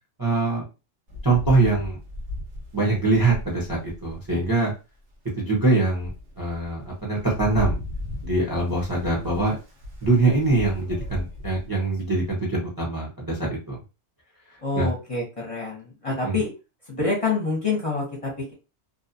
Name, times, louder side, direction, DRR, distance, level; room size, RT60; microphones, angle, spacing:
voice 1, 0.2-0.6 1.2-2.0 2.7-4.7 5.4-7.8 8.2-9.5 10.0-13.8 14.7-14.9 16.2-16.4, right 3 dB, 20° right, -3 dB, 0.7 m, -23 dB
Rain, 1.1-4.6 5.1-5.2 5.7-12.3, left 1 dB, 75° right, 1.1 m, -36 dB
voice 2, 14.6-16.5 16.9-18.5, left 3 dB, 35° left, -3 dB, 0.8 m, -27 dB
2.6 x 2.3 x 2.6 m, 0.30 s
omnidirectional pair, 1.2 m